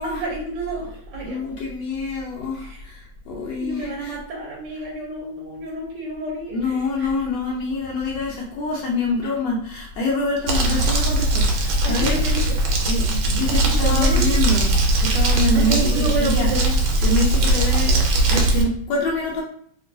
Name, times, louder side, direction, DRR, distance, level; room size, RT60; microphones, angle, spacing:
voice 1, 0.0-1.6 2.6-2.8 3.6-7.1 9.2-9.3 11.8-12.6 13.5-14.3 15.5-16.8, right 2 dB, 70° right, -3 dB, 1.3 m, -30 dB
voice 2, 1.2-4.1 6.5-12.1 12.9-16.5 17.0-19.4, left 2 dB, 75° left, -3 dB, 1.3 m, -26 dB
Crumpling crinkling, 10.5-18.6, right 2 dB, 85° right, 1.5 m, -19 dB
3.0 x 2.9 x 2.6 m, 0.62 s
omnidirectional pair, 2.1 m